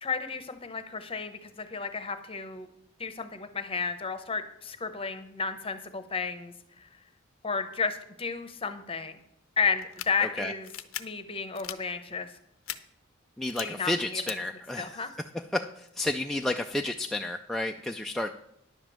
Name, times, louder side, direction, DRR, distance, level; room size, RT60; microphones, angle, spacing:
voice 1, 0.0-2.7 3.0-6.9 7.4-9.2 9.6-10.7 11.0-12.3 13.6-14.2 14.8-15.1, left 5 dB, 25° left, 10 dB, 0.8 m, -32 dB
sound 1, 9.8-10.1 10.6-11.0 11.5-11.8 12.7-12.8 13.4-13.6 14.3-14.4, left 13 dB, 85° left, 0.6 m, -37 dB
voice 2, 10.2-10.5 13.4-15.0 15.5-18.3, left 1 dB, ahead, 2 dB, 0.3 m, -31 dB
10.5 x 5.2 x 7.4 m, 0.76 s
head